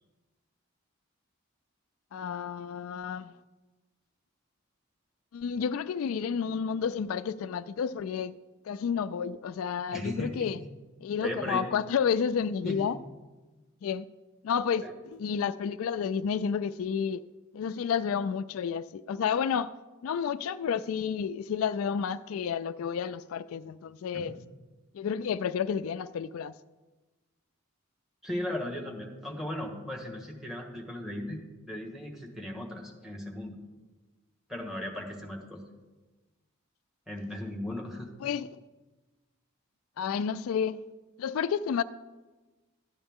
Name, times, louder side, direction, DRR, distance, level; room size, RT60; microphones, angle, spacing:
voice 1, 2.1-3.3 5.3-8.3 8.6-10.6 11.0-13.0 13.8-14.1 14.4-17.2 17.5-19.7 20.0-24.4 24.9-26.5 38.2-38.5 40.0-40.9 41.2-41.8, left 7 dB, 75° left, 0.3 m, -30 dB
voice 2, 9.9-10.5 11.2-11.6 12.6-12.9 14.8-14.9 28.2-33.6 34.5-35.6 37.1-38.1, left 1 dB, ahead, 1.5 m, -37 dB
13.0 x 9.6 x 3.6 m
head